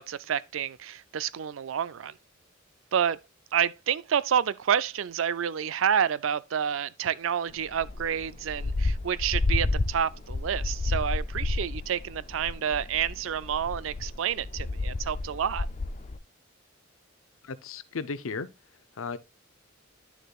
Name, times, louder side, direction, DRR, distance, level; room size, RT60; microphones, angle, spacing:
voice 1, 0.0-2.2 2.9-3.2 3.5-15.7, right 8 dB, 75° right, 0.4 m, -29 dB
sound 1, 7.7-16.2, left 2 dB, 35° left, 0.4 m, -31 dB
voice 2, 17.4-18.5 19.0-19.2, left 4 dB, 90° left, 0.7 m, -34 dB
9.5 x 6.6 x 2.3 m
head